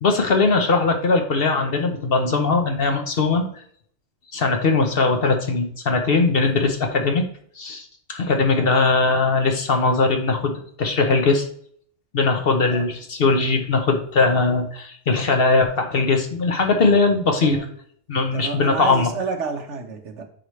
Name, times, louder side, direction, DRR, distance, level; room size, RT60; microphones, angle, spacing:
voice 1, 0.0-3.5 4.3-7.3 7.6-11.5 12.1-17.6 18.1-19.1, left 3 dB, 50° left, 5 dB, 1.0 m, -20 dB
voice 2, 17.4-17.7 18.3-20.2, right 4 dB, 65° right, 5 dB, 1.3 m, -30 dB
8.9 x 4.8 x 3.2 m, 0.62 s
omnidirectional pair, 1.3 m